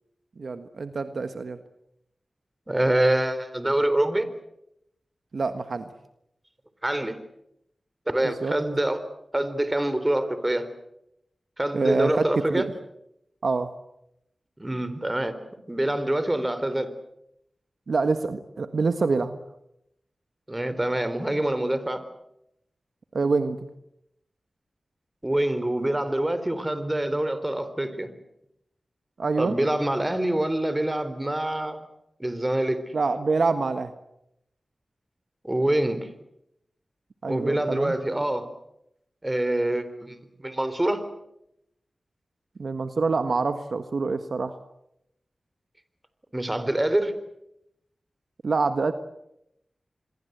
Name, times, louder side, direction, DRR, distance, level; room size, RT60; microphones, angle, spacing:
voice 1, 0.4-1.6 5.3-5.9 8.4-8.5 11.7-12.2 12.5-12.7 13.4-13.7 17.9-19.4 23.1-23.7 29.2-29.5 32.9-33.9 37.2-37.9 42.6-44.6 48.4-48.9, right 4 dB, 75° right, 9 dB, 1.5 m, -26 dB
voice 2, 2.7-4.3 6.8-7.2 8.1-9.0 9.3-10.7 11.6-12.7 14.6-15.4 15.7-16.9 20.5-22.0 25.2-28.1 29.4-31.9 32.2-32.9 35.4-36.1 37.3-38.5 39.2-41.1 46.3-47.1, right 1 dB, 20° right, 12 dB, 3.9 m, -25 dB
27.0 x 22.0 x 8.1 m, 0.81 s
cardioid pair, 45°, 0 cm